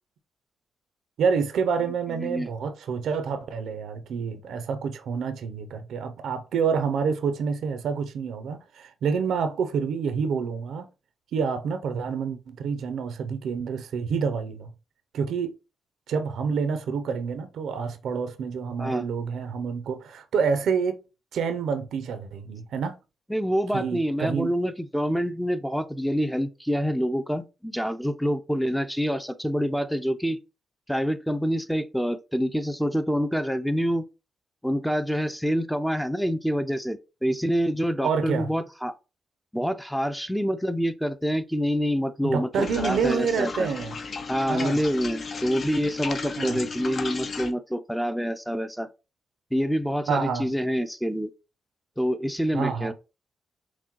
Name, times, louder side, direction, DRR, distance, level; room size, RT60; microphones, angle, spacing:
voice 1, 1.2-10.9 11.3-14.7 15.1-15.5 16.1-21.0 21.3-22.9 23.7-24.5 38.0-38.5 42.2-44.0 44.5-44.8 46.4-46.6 50.1-50.5 52.5-52.9, right 6 dB, 85° right, 0.6 m, -28 dB
voice 2, 2.2-2.5 18.8-19.0 23.3-30.4 30.9-34.0 34.6-38.9 39.5-43.7 44.3-48.9 49.5-51.3 52.0-52.9, equal, ahead, 0.4 m, -26 dB
sound 1, 42.5-47.5, left 4 dB, 50° left, 0.5 m, -35 dB
5.9 x 2.2 x 3.0 m
cardioid pair, 80°, 0 cm